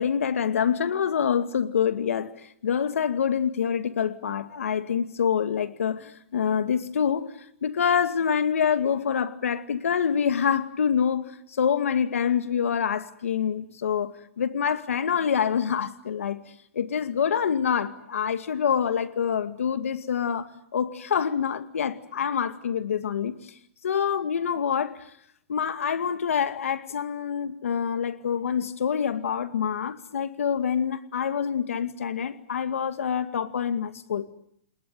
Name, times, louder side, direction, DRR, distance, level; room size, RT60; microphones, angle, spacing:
voice 1, 0.0-2.3 2.6-7.3 7.6-16.4 16.7-23.4 23.8-25.1 25.5-34.2, left 7 dB, 85° left, 2.2 m, -26 dB
29.5 x 20.0 x 9.5 m
hypercardioid pair, 180°, 7 cm